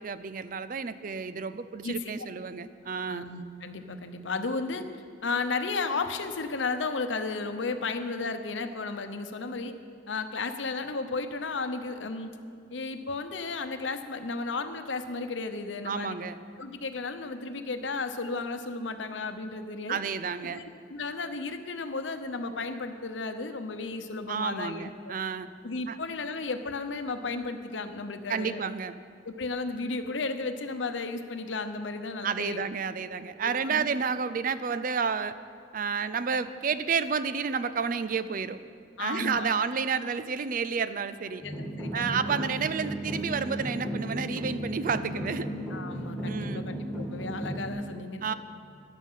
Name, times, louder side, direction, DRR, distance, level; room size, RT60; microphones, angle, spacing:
voice 1, 0.0-3.2 15.8-16.4 19.9-20.6 24.3-25.5 25.9-26.0 28.3-29.0 32.2-35.3 35.7-38.6 39.0-41.4 41.9-45.5 46.3-46.7 48.2-48.3, right 6 dB, 45° right, 13 dB, 0.4 m, -30 dB
voice 2, 1.8-2.1 2.9-4.8 5.2-9.7 10.1-12.3 12.7-16.2 16.6-20.0 20.4-25.1 25.6-28.6 29.2-32.6 33.0-33.1 33.4-33.9 39.0-39.6 41.4-42.2 45.7-48.3, left 3 dB, 90° left, 8 dB, 0.9 m, -34 dB
sound 1, 41.4-47.7, right 1 dB, ahead, 2.1 m, -35 dB
13.5 x 11.0 x 5.7 m, 2.2 s
head